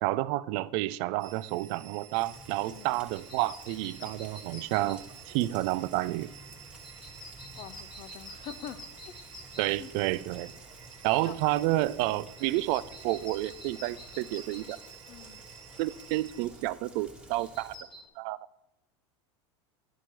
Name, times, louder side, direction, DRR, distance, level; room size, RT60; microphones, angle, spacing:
voice 1, 0.0-6.3 9.6-10.5 11.0-14.8 15.8-17.7 18.2-18.5, right 17 dB, 60° right, 0.4 m, -30 dB
sound 1, 1.2-16.5, right 8 dB, 90° right, 0.7 m, -52 dB
Rain, 2.1-17.7, right 2 dB, 5° right, 1.3 m, -52 dB
voice 2, 2.6-3.0 7.6-8.8 9.1-9.2 9.8-9.9 11.2-11.4 12.1-12.3 15.1-15.4, left 10 dB, 50° left, 0.5 m, -45 dB
sound 2, 2.6-18.1, left 2 dB, 30° left, 1.5 m, -51 dB
11.0 x 4.3 x 4.6 m
hypercardioid pair, 100°, 15 cm